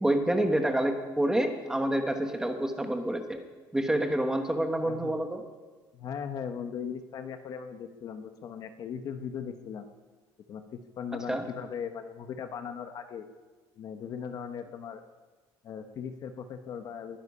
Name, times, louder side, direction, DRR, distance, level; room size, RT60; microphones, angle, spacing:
voice 1, 0.0-3.4 3.7-5.4 11.3-11.4, right 1 dB, 5° right, 6 dB, 1.2 m, -28 dB
voice 2, 5.9-9.9 10.5-13.3 13.8-15.0 15.6-17.2, left 7 dB, 45° left, 8 dB, 0.9 m, -38 dB
21.5 x 9.8 x 5.5 m, 1.3 s
cardioid pair, 160°, 9 cm